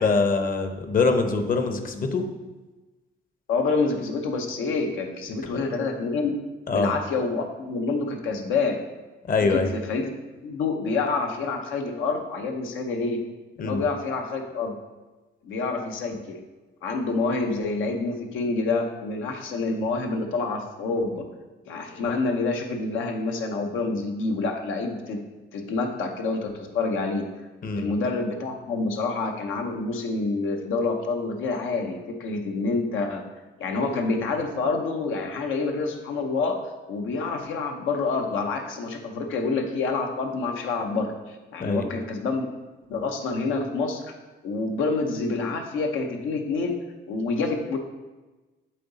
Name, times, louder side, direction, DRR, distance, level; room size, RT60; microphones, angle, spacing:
voice 1, 0.0-2.3 5.5-5.6 6.7-6.9 9.3-9.7 13.6-13.8 27.6-27.9 41.6-41.9, left 4 dB, 45° left, 7 dB, 0.8 m, -23 dB
voice 2, 3.5-6.3 6.7-8.8 9.5-10.1 10.4-13.2 13.6-14.7 15.4-16.4 16.8-21.2 21.7-25.2 25.5-27.3 27.8-33.2 33.6-36.6 36.9-42.5 42.9-44.2 44.4-46.8 47.1-47.8, left 3 dB, 90° left, 3 dB, 0.9 m, -27 dB
7.6 x 3.9 x 4.1 m, 1.2 s
cardioid pair, 90°, 20 cm